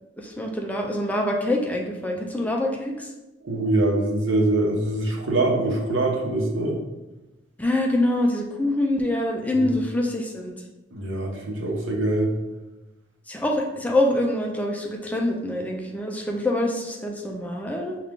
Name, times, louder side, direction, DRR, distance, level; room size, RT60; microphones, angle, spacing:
voice 1, 0.2-3.1 7.6-10.5 13.3-18.0, left 1 dB, 10° left, 0 dB, 0.4 m, -25 dB
voice 2, 3.4-6.8 9.6-9.7 10.9-12.3, right 2 dB, 80° right, 0 dB, 0.9 m, -23 dB
5.8 x 2.4 x 3.6 m, 1.1 s
head